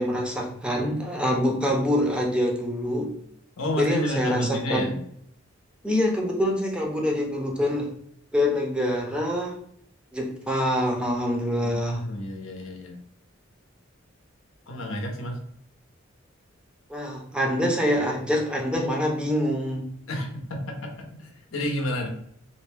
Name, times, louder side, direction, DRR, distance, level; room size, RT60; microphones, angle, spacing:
voice 1, 0.0-3.1 3.8-4.9 5.8-7.9 8.3-9.6 10.1-12.0 16.9-19.9, equal, 5° right, 0 dB, 0.5 m, -25 dB
voice 2, 3.6-5.0 11.6-13.0 14.7-15.4 20.1-22.1, left 1 dB, 90° left, 2 dB, 0.7 m, -30 dB
2.6 x 2.1 x 3.2 m, 0.69 s
head